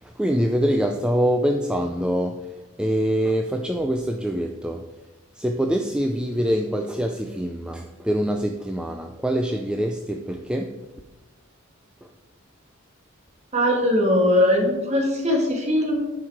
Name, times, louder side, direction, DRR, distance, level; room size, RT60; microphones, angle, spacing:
voice 1, 0.0-4.9 5.4-10.8 12.0-12.1, equal, 5° right, 4 dB, 0.3 m, -24 dB
voice 2, 13.5-16.0, left 1 dB, 30° right, 1 dB, 1.6 m, -20 dB
9.7 x 4.7 x 4.8 m, 1.1 s
head